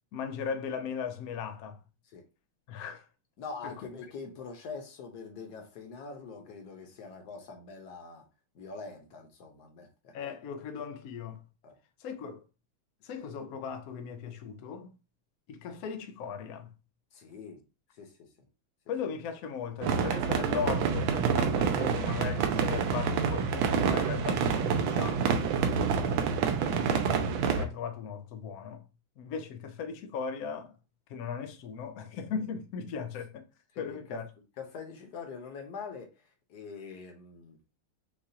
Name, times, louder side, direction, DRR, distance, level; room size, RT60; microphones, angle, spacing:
voice 1, 0.1-1.8 2.7-3.1 3.6-3.8 10.1-11.4 12.0-12.4 13.0-14.9 15.5-16.7 18.9-25.4 26.6-28.8 29.2-30.8 31.1-33.5 33.8-34.2, left 6 dB, 85° left, 0.8 m, -37 dB
voice 2, 3.4-8.2 8.5-10.1 11.6-11.7 17.1-17.6 17.9-18.3 25.6-25.8 33.7-34.3 34.6-37.6, left 4 dB, 55° left, 1.3 m, -44 dB
sound 1, 19.8-27.7, right 6 dB, 75° right, 1.4 m, -27 dB
6.6 x 2.4 x 2.8 m
omnidirectional pair, 2.3 m